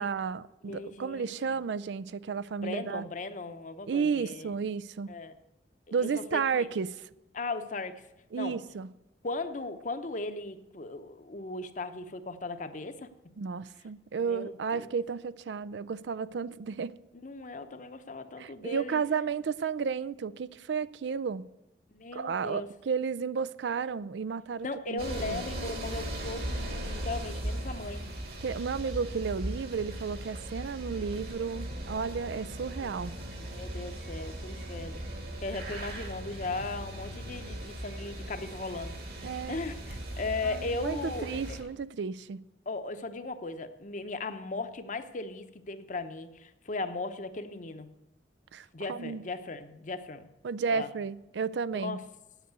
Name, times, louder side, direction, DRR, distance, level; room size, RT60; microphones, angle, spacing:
voice 1, 0.0-3.0 3.9-5.1 5.9-7.1 8.3-8.9 13.4-17.0 18.4-21.5 22.1-25.4 28.4-33.1 39.2-39.6 40.4-42.4 48.5-49.2 50.4-52.0, right 6 dB, 80° right, 0.4 m, -33 dB
voice 2, 0.7-1.3 2.6-4.5 5.1-5.3 6.0-6.7 7.3-8.0 8.3-8.6 9.2-13.1 14.3-14.9 17.2-19.0 21.9-22.7 24.6-28.1 32.8-33.0 33.3-35.0 35.4-39.0 39.5-41.6 42.7-47.9 48.7-50.3 50.7-50.9 51.7-52.0, left 3 dB, 45° left, 0.8 m, -37 dB
sound 1, 25.0-41.6, right 1 dB, 60° right, 2.2 m, -38 dB
8.9 x 8.1 x 8.1 m
head